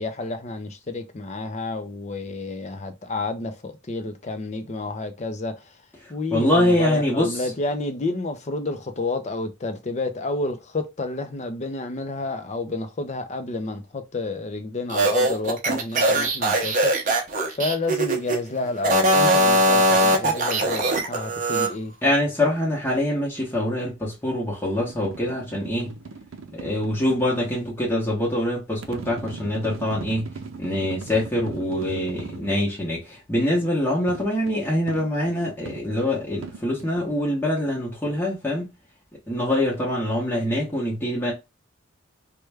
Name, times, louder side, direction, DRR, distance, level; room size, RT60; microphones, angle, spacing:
voice 1, 0.0-5.6 6.1-16.9 17.5-21.9, left 2 dB, 35° left, 0.5 m, -30 dB
voice 2, 6.0-7.5 22.0-26.0 26.5-30.3 30.6-38.7 39.3-41.3, left 1 dB, 10° left, 0.9 m, -24 dB
sound 1, 14.9-18.4 18.8-21.7, right 1 dB, 40° right, 0.7 m, -20 dB
sound 2, 24.7-27.5 28.8-32.6 34.1-37.1, right 4 dB, 80° right, 0.5 m, -39 dB
3.2 x 2.2 x 3.3 m
head